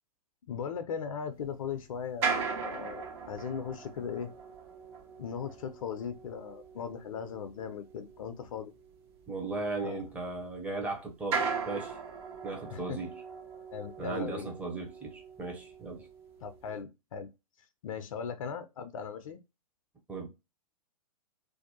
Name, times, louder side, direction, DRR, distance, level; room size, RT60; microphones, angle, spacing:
voice 1, 0.5-4.3 5.2-8.7 9.8-10.0 12.7-13.0 13.5-14.5 16.4-17.3 17.8-19.4, left 7 dB, 60° left, 0.5 m, -38 dB
sound 1, 1.4-10.8 11.2-16.8, right 5 dB, 40° right, 0.8 m, -39 dB
voice 2, 9.3-12.0 12.4-13.2 14.0-16.1 20.1-20.3, right 3 dB, 5° right, 0.7 m, -37 dB
2.6 x 2.1 x 2.7 m
figure-of-eight pair, 110°, 20 cm